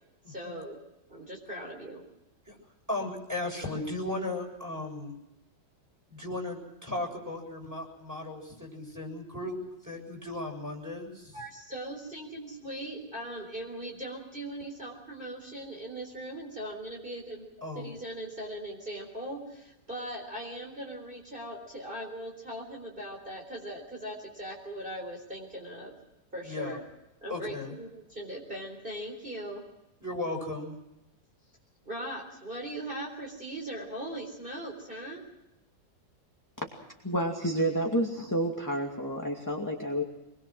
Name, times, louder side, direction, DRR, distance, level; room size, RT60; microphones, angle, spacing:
voice 1, 0.3-0.8 1.1-2.0 11.3-17.5 17.7-25.9 26.3-26.8 27.2-29.6 31.9-35.3, right 1 dB, 30° right, -1 dB, 4.2 m, -39 dB
voice 2, 2.9-5.1 6.1-9.6 9.8-11.4 17.6-17.9 26.4-26.8 27.3-27.8 30.0-30.8, left 2 dB, 10° right, 1 dB, 7.3 m, -36 dB
voice 3, 37.0-40.0, right 1 dB, 10° left, 0 dB, 2.4 m, -29 dB
25.5 x 22.0 x 6.3 m, 0.93 s
omnidirectional pair, 1.9 m